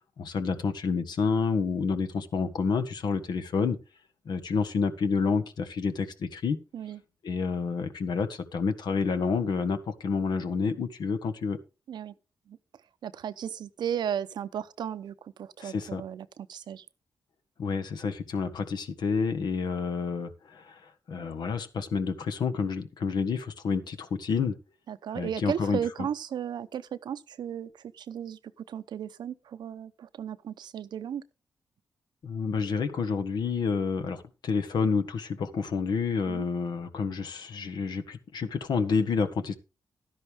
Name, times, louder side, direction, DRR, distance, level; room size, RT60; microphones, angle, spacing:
voice 1, 0.2-3.8 4.2-6.6 7.2-11.6 15.6-16.0 17.6-24.6 25.1-25.8 32.2-39.5, left 5 dB, 75° left, 1.4 m, -29 dB
voice 2, 13.0-16.9 24.9-28.4 28.7-31.2 36.3-36.5, right 9 dB, 80° right, 0.7 m, -35 dB
12.0 x 10.5 x 3.5 m
cardioid pair, 55°, 7 cm